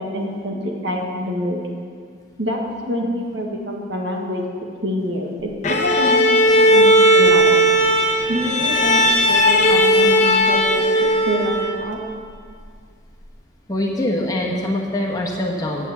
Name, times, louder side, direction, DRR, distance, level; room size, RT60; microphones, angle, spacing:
voice 1, 0.0-1.6 2.4-4.4 4.8-7.6 8.3-12.0, equal, 70° right, 0 dB, 1.7 m, -26 dB
Bowed string instrument, 5.6-11.9, equal, 40° left, 1.1 m, -16 dB
voice 2, 13.7-15.9, left 1 dB, 20° left, -2 dB, 1.3 m, -23 dB
9.0 x 8.7 x 7.1 m, 2.2 s
head